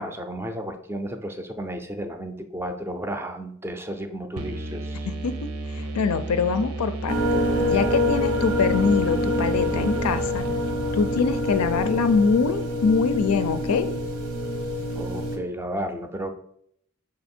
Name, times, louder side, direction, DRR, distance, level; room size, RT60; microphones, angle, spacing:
voice 1, 0.0-5.1 14.9-16.3, right 1 dB, 10° right, 7 dB, 0.4 m, -33 dB
sound 1, 4.4-12.0, right 2 dB, 70° right, 0.8 m, -33 dB
voice 2, 5.1-7.2 7.6-10.5 10.9-13.9, left 5 dB, 75° left, 10 dB, 0.4 m, -24 dB
sound 2, 7.1-15.4, left 1 dB, 90° right, 1.1 m, -26 dB
5.8 x 3.8 x 4.3 m, 0.69 s
head